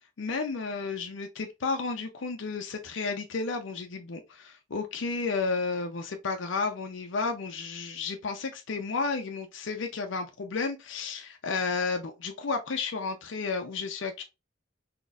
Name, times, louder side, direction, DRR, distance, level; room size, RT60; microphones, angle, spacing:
voice 1, 0.2-14.2, left 4 dB, 75° left, 0.5 m, -32 dB
4.0 x 2.9 x 2.3 m
head